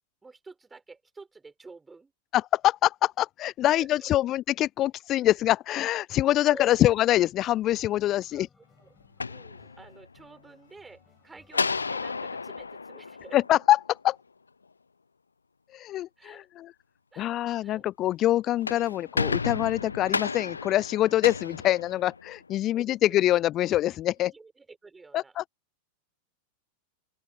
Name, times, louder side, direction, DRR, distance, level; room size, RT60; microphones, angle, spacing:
voice 1, 0.2-2.1 3.8-4.1 6.3-6.7 8.3-8.9 9.3-13.4 16.2-16.5 17.1-17.3 17.6-17.8 21.8-21.9 22.7-23.2 24.2-25.4, right 4 dB, 10° right, 5.4 m, -50 dB
voice 2, 2.3-8.5 13.3-14.2 15.7-16.4 17.2-24.3 25.1-25.4, left 13 dB, 35° left, 0.4 m, -24 dB
sound 1, 5.4-5.8 6.3-13.5, left 5 dB, 15° left, 6.4 m, -65 dB
sound 2, 9.0-10.2 11.5-14.0 18.4-22.5, left 4 dB, 75° left, 0.7 m, -33 dB
open air
figure-of-eight pair, 90°, 0 cm